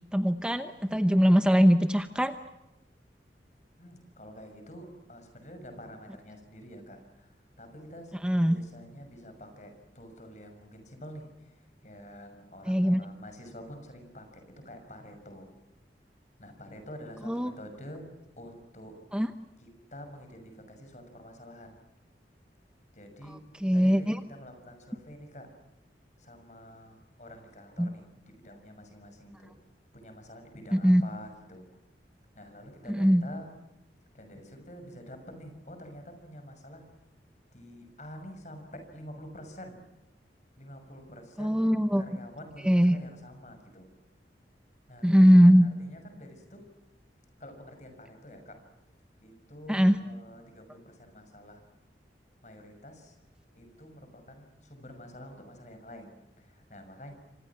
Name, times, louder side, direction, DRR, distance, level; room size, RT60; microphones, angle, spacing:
voice 1, 0.1-2.3 8.2-8.6 12.6-13.0 17.2-17.5 19.1-19.3 23.3-24.2 27.8-27.9 30.7-31.0 32.9-33.2 41.4-42.0 42.6-43.0 45.0-45.7 49.7-50.0, equal, 5° right, 9 dB, 0.9 m, -21 dB
voice 2, 3.8-8.1 8.4-11.6 11.8-15.5 16.4-18.1 18.4-18.9 19.6-21.8 22.9-25.5 26.2-28.1 28.4-29.5 29.9-31.7 32.3-33.5 34.1-36.8 37.5-39.8 40.6-41.6 42.0-43.9 44.9-46.6 47.4-48.6 49.2-51.6 52.4-53.1 53.6-57.1, equal, 40° left, 6 dB, 6.2 m, -48 dB
28.5 x 26.0 x 6.0 m, 0.98 s
head